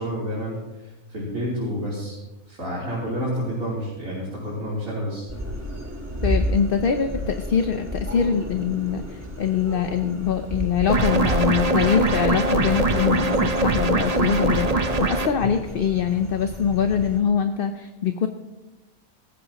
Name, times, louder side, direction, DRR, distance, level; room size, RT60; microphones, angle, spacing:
voice 1, 0.0-2.1 2.5-5.3, equal, 70° right, -7 dB, 4.0 m, -29 dB
sound 1, 5.3-17.2, equal, 10° right, 4.2 m, -33 dB
voice 2, 6.2-18.3, left 7 dB, 50° left, 7 dB, 0.8 m, -23 dB
sound 2, 10.9-15.3, right 2 dB, 30° right, 0.8 m, -22 dB
18.5 x 15.0 x 3.0 m, 1.0 s
omnidirectional pair, 1.5 m